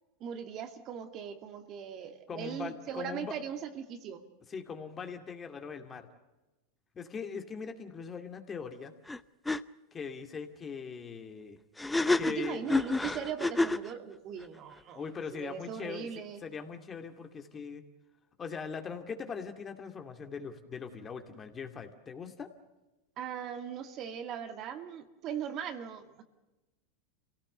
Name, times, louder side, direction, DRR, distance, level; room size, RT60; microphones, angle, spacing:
voice 1, 0.2-4.2 12.3-15.0 15.3-16.4 23.2-26.2, right 8 dB, 45° right, 7 dB, 2.1 m, -39 dB
voice 2, 2.3-3.3 4.5-6.1 6.9-8.9 9.9-11.6 12.1-12.6 14.9-16.1 16.4-17.8 18.4-22.5, left 5 dB, 25° left, 6 dB, 2.4 m, -40 dB
sound 1, 9.1-9.2 9.5-9.6 11.8-13.9, left 2 dB, 10° left, 0.7 m, -28 dB
26.5 x 17.5 x 6.8 m, 1.1 s
hypercardioid pair, 110°, 0 cm